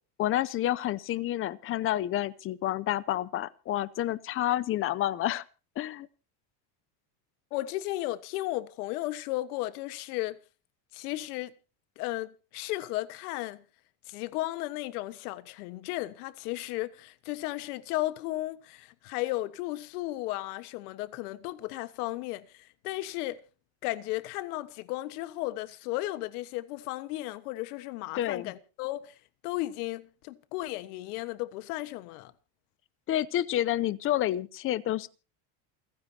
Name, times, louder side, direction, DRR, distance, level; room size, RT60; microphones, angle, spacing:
voice 1, 0.2-5.4 5.8-6.1 28.2-28.5 33.1-35.1, left 13 dB, 30° left, 0.6 m, -29 dB
voice 2, 7.5-10.4 10.9-11.5 12.0-13.6 14.1-23.4 23.8-29.2 29.4-32.3, left 17 dB, 80° left, 1.5 m, -34 dB
28.5 x 9.9 x 2.9 m
cardioid pair, 160°, 45 cm